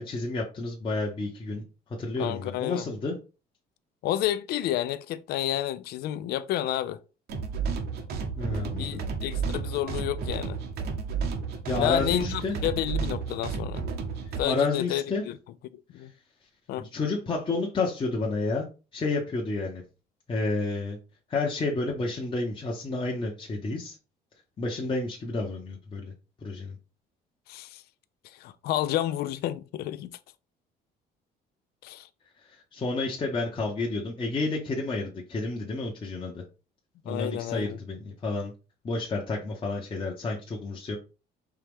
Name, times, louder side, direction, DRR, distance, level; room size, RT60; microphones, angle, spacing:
voice 1, 0.0-1.6 2.0-3.2 8.4-9.0 11.7-12.6 14.4-15.3 16.8-18.7 18.9-19.8 20.3-21.0 21.3-24.0 24.6-26.1 26.4-26.7 32.5-36.4 37.0-38.5 38.8-41.0, left 3 dB, 30° left, 0.9 m, -30 dB
voice 2, 2.2-2.8 4.0-7.0 8.7-10.6 11.7-13.8 14.4-15.4 15.9-16.1 16.7-16.9 27.5-27.8 28.2-30.2 31.8-32.1 37.1-37.8, left 12 dB, 70° left, 0.4 m, -30 dB
sound 1, 7.3-14.4, right 5 dB, 70° right, 1.0 m, -32 dB
4.6 x 2.9 x 3.5 m
cardioid pair, 110°, 17 cm